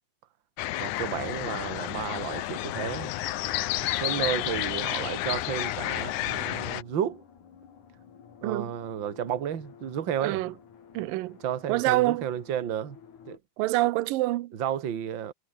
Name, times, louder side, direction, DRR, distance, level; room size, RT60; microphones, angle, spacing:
sound 1, 0.6-6.8, left 15 dB, 80° left, 1.7 m, -31 dB
sound 2, 0.6-13.4, left 7 dB, 50° left, 4.0 m, -53 dB
voice 1, 0.8-3.1 3.8-7.2 8.4-10.4 11.4-13.0 13.2-13.4 14.5-15.3, right 9 dB, 40° right, 1.8 m, -32 dB
voice 2, 10.2-10.5 10.9-11.4 11.7-12.3 13.6-14.5, right 18 dB, 70° right, 2.3 m, -26 dB
omnidirectional pair, 4.6 m